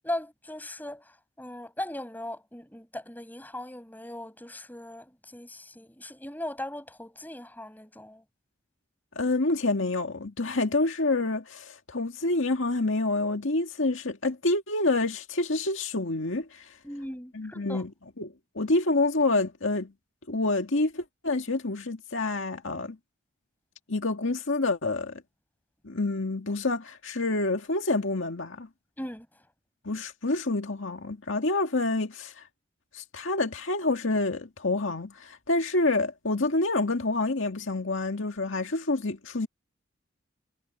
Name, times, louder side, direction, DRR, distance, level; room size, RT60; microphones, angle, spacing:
voice 1, 0.0-1.0 1.4-8.2 16.8-17.8 29.0-29.3, left 1 dB, 10° left, 7.6 m, -38 dB
voice 2, 9.2-16.8 17.3-17.9 18.2-19.9 20.3-23.0 23.9-25.2 25.8-28.7 29.8-32.4 32.9-39.5, left 2 dB, 70° left, 2.0 m, -27 dB
head